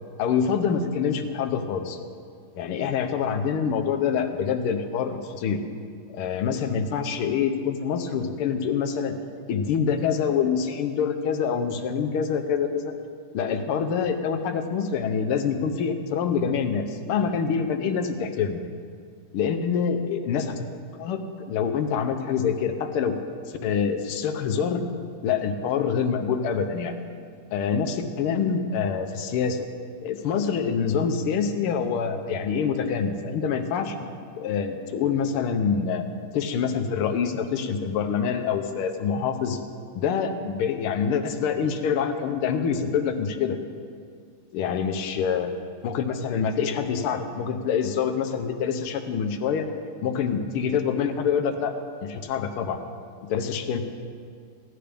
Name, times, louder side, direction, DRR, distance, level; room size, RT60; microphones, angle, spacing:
voice 1, 0.2-2.0 2.6-5.6 6.1-9.1 9.5-12.9 13.3-18.6 19.3-20.7 21.0-23.1 23.5-24.8 25.2-26.9 27.5-29.7 30.0-36.1 36.3-39.6 40.0-43.6 44.5-45.5 45.8-49.7 50.0-51.7 52.0-52.8 53.3-53.8, left 6 dB, 85° left, 7 dB, 1.7 m, -26 dB
16.5 x 11.0 x 3.4 m, 2.2 s
omnidirectional pair, 2.3 m